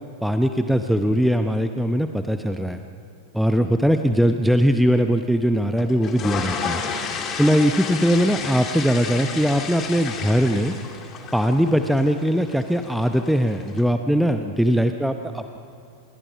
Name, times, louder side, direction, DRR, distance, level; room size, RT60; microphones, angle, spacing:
voice 1, 0.2-2.8 3.3-6.8 7.4-10.7 11.3-15.6, equal, ahead, 7 dB, 0.8 m, -20 dB
sound 1, 5.8-13.8, left 6 dB, 30° left, 2.1 m, -32 dB
27.0 x 21.0 x 5.7 m, 2.6 s
figure-of-eight pair, 90°, 0 cm